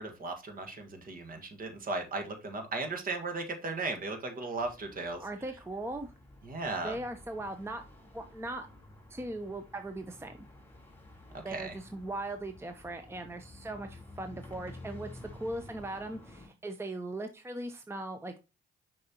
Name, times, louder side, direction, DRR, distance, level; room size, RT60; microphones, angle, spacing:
voice 1, 0.0-5.2 6.4-7.0 11.5-11.7, right 3 dB, 45° right, 5 dB, 1.6 m, -36 dB
sound 1, 4.6-16.5, left 2 dB, 10° left, 3.6 m, -52 dB
voice 2, 5.2-6.1 6.8-7.8 8.1-8.7 9.1-10.3 11.4-18.4, right 2 dB, 10° right, 7 dB, 0.7 m, -39 dB
6.5 x 5.5 x 2.9 m, 0.28 s
cardioid pair, 90°, 20 cm